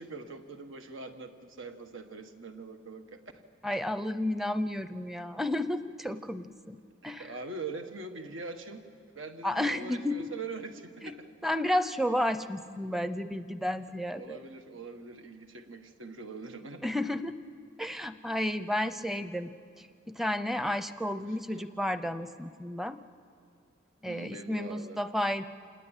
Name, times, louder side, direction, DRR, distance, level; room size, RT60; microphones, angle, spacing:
voice 1, 0.0-3.4 7.0-8.8 9.1-11.3 14.1-16.9 21.3-21.6 24.1-25.0, right 3 dB, 90° right, 6 dB, 1.6 m, -43 dB
voice 2, 3.6-6.8 7.0-7.3 9.4-10.3 11.0-11.1 11.4-14.4 16.8-17.4 17.8-19.9 20.1-23.0 24.0-25.4, left 1 dB, ahead, 11 dB, 0.6 m, -32 dB
27.5 x 19.5 x 9.1 m, 2.2 s
head